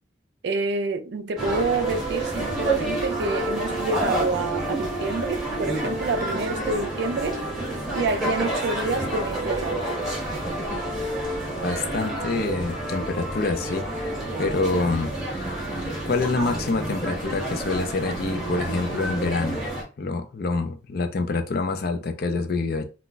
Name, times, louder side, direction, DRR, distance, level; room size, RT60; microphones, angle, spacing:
voice 1, 0.4-7.4 7.9-9.8, right 3 dB, 55° right, 0.3 m, -28 dB
sound 1, 1.4-19.8, right 1 dB, ahead, 0.9 m, -29 dB
voice 2, 11.6-14.1 14.4-15.1 15.8-19.6 20.0-22.8, left 3 dB, 50° left, 0.4 m, -26 dB
2.3 x 2.2 x 3.8 m
head